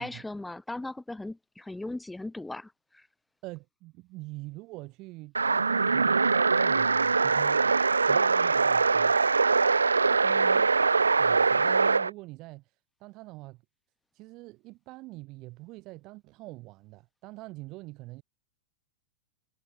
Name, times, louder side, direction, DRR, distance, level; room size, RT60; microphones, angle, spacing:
voice 1, 0.0-3.1 10.2-10.7, left 2 dB, 5° left, 2.6 m, -39 dB
voice 2, 3.4-7.7 8.1-9.2 11.2-12.6 13.0-13.6 14.1-18.2, right 21 dB, 40° right, 3.1 m, -45 dB
sound 1, 5.3-12.1, right 4 dB, 75° right, 0.5 m, -23 dB
figure-of-eight pair, 90°, 0 cm